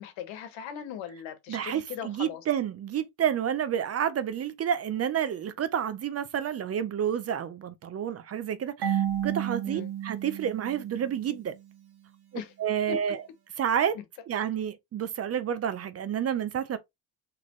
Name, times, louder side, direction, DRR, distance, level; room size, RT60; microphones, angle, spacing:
voice 1, 0.0-2.4 9.6-9.9 12.3-12.5 12.9-13.0, left 9 dB, 90° left, 1.3 m, -39 dB
voice 2, 1.5-11.5 12.6-13.2 13.6-14.0 14.3-16.8, right 9 dB, 35° right, 0.5 m, -29 dB
Marimba xylophone / Wood, 8.8-11.6, right 10 dB, 55° right, 1.2 m, -32 dB
4.2 x 3.3 x 3.1 m
cardioid pair, 140°, 45 cm